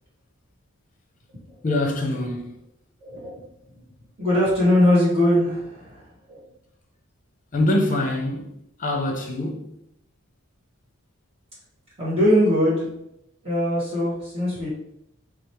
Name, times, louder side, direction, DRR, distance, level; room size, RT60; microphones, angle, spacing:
voice 1, 1.6-2.6 7.5-8.5 8.8-9.7, left 1 dB, 40° left, 0.8 m, -24 dB
voice 2, 3.0-3.3 3.7-3.8 4.2-6.4 12.0-12.9 13.4-14.7, left 1 dB, 30° right, 1.4 m, -21 dB
5.0 x 2.0 x 4.4 m
head